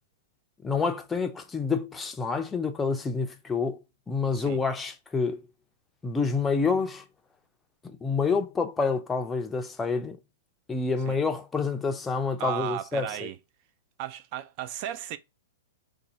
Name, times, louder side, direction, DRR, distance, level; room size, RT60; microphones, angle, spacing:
voice 1, 0.6-3.8 4.1-5.4 6.0-7.0 7.8-10.2 10.7-13.3, left 4 dB, 15° left, 0.5 m, -28 dB
voice 2, 12.4-13.4 14.0-15.2, right 12 dB, 45° right, 0.4 m, -35 dB
2.6 x 2.3 x 4.0 m
hypercardioid pair, 130°, 0 cm